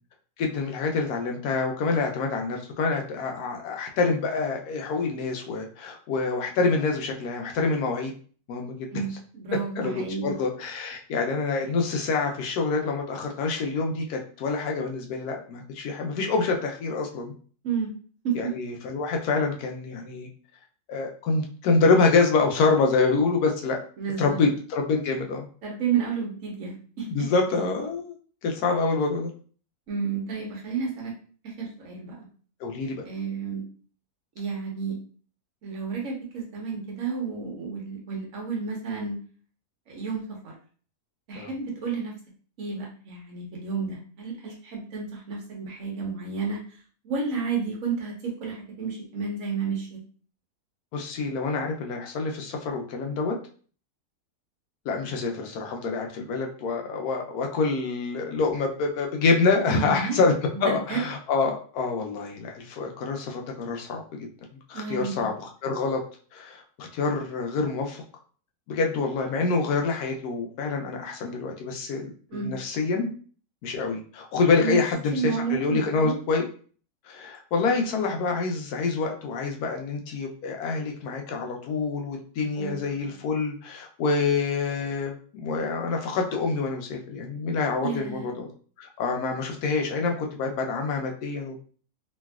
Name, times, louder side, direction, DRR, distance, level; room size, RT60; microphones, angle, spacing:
voice 1, 0.4-8.1 8.5-8.9 9.8-17.3 18.3-20.3 20.9-23.8 24.2-25.5 27.1-28.2 28.4-29.3 32.6-33.0 41.3-41.5 50.9-53.3 54.9-60.3 60.6-64.3 64.7-65.3 65.6-66.0 66.3-68.0 68.7-73.1 73.6-76.4 77.1-88.5 88.8-91.6, left 4 dB, 75° left, 2 dB, 1.1 m, -26 dB
voice 2, 8.9-10.3 17.6-17.9 18.2-18.5 24.0-24.4 25.6-27.3 29.9-31.1 31.4-32.3 33.0-33.6 34.3-34.9 35.6-39.2 39.9-40.5 41.3-42.1 42.6-46.6 47.0-50.0 59.7-60.2 60.5-61.0 64.7-65.3 72.3-72.5 74.6-74.8 75.1-76.2 82.5-82.9 87.8-88.3, right 5 dB, 60° right, -2 dB, 1.2 m, -31 dB
3.1 x 2.7 x 2.3 m, 0.43 s
omnidirectional pair, 1.7 m